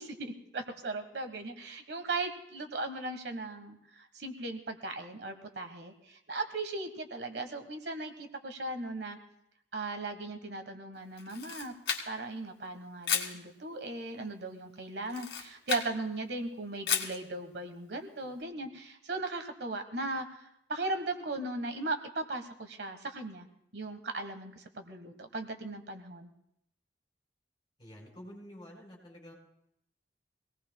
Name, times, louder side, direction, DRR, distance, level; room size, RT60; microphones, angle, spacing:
voice 1, 0.0-9.2 9.7-11.7 12.1-23.5 23.7-26.3, right 2 dB, 70° right, 7 dB, 1.3 m, -38 dB
Camera, 11.2-12.4 13.0-13.4 15.1-15.9 16.9-17.2, left 8 dB, 75° left, 1.9 m, -33 dB
voice 2, 27.8-29.3, equal, 25° left, -1 dB, 4.7 m, -49 dB
24.5 x 18.0 x 2.3 m, 0.78 s
head